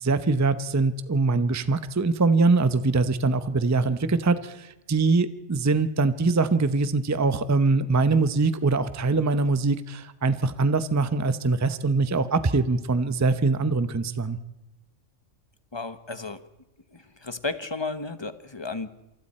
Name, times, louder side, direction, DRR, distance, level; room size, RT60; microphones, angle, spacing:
voice 1, 0.0-14.4, right 3 dB, 15° right, 11 dB, 0.6 m, -23 dB
voice 2, 15.7-16.4 16.9-18.9, left 3 dB, 20° left, 10 dB, 1.0 m, -33 dB
27.5 x 24.5 x 4.3 m, 0.95 s
omnidirectional pair, 1.4 m